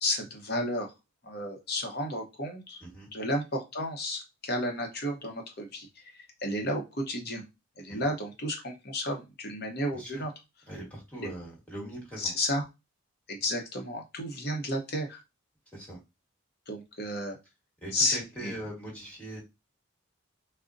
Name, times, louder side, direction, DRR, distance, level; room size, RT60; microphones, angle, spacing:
voice 1, 0.0-0.9 1.2-2.8 3.1-6.0 6.4-7.4 7.8-10.3 11.2-11.3 12.2-12.6 13.3-15.2 16.7-17.4 17.9-18.5, left 1 dB, 45° left, 2 dB, 0.7 m, -32 dB
voice 2, 2.8-3.1 9.9-10.2 10.7-12.3 15.7-16.0 17.8-19.4, right 1 dB, 5° left, -5 dB, 1.2 m, -41 dB
3.8 x 2.1 x 2.5 m, 0.24 s
head